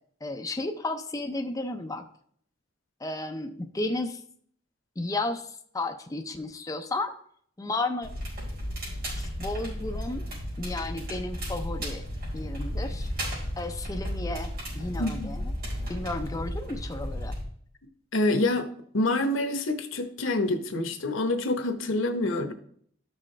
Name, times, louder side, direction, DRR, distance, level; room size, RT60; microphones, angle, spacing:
voice 1, 0.2-2.1 3.0-4.2 5.0-7.1 7.6-8.1 9.2-10.2 10.6-12.0 12.3-13.1 13.6-15.5 15.9-17.3, left 2 dB, 20° left, 6 dB, 0.5 m, -33 dB
Crackle, 8.0-17.4, equal, 50° right, 4.5 m, -34 dB
voice 2, 15.0-15.3 18.1-18.7 18.9-22.5, left 2 dB, 85° left, 8 dB, 1.0 m, -27 dB
12.5 x 6.1 x 3.2 m, 0.63 s
head